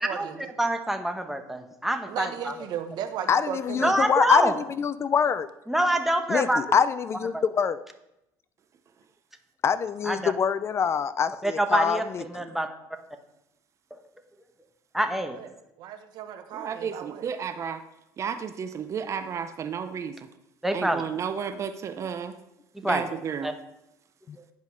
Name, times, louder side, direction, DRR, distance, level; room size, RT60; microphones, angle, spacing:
voice 1, 0.0-0.5 2.1-4.0 15.1-15.5 15.8-17.2, right 9 dB, 65° right, 8 dB, 1.2 m, -36 dB
voice 2, 0.6-2.5 3.8-4.5 5.7-6.6 7.3-7.4 10.0-10.3 11.4-12.7 14.9-15.4 20.6-21.0 22.8-23.0 23.4-23.5, right 1 dB, 5° right, 6 dB, 1.1 m, -26 dB
voice 3, 3.3-5.5 6.3-7.8 9.6-12.2 24.3-24.4, left 7 dB, 35° left, 15 dB, 0.4 m, -25 dB
voice 4, 16.5-17.8 18.2-20.3 20.7-22.4 22.8-23.5, right 7 dB, 40° right, 9 dB, 0.6 m, -32 dB
9.6 x 5.2 x 6.4 m, 0.85 s
cardioid pair, 110°, 8 cm